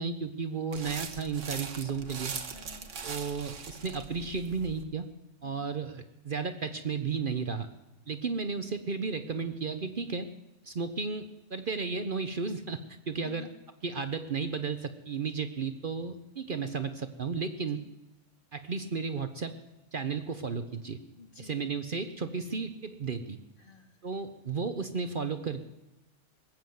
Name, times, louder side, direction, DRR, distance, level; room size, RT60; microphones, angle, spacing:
voice 1, 0.0-2.3 3.0-5.1 5.4-7.7 8.1-10.3 10.6-12.8 13.1-13.5 13.8-17.8 18.5-19.5 19.9-21.0 21.4-23.4 24.0-25.6, right 5 dB, 50° right, 9 dB, 0.9 m, -33 dB
sound 1, 0.7-4.8, right 5 dB, 85° right, 1.5 m, -41 dB
voice 2, 2.5-2.9 5.4-5.7 13.2-13.5 17.6-17.8 21.1-21.6 23.6-24.0, left 4 dB, 45° left, 3 dB, 2.3 m, -50 dB
20.0 x 8.8 x 7.8 m, 0.97 s
omnidirectional pair, 1.3 m